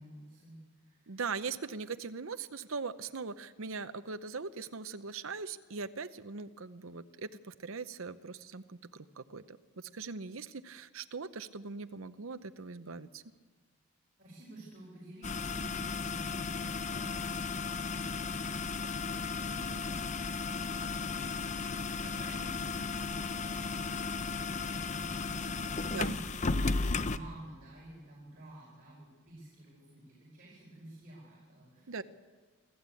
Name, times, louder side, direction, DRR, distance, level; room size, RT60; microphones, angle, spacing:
voice 1, 0.0-1.2 14.2-32.0, right 1 dB, 40° right, -5 dB, 5.4 m, -52 dB
voice 2, 1.1-13.2 25.9-26.1 31.9-32.0, right 4 dB, 70° right, 10 dB, 0.7 m, -41 dB
sound 1, 15.2-27.2, left 4 dB, 35° left, 0.6 m, -35 dB
27.5 x 13.5 x 8.4 m, 1.4 s
head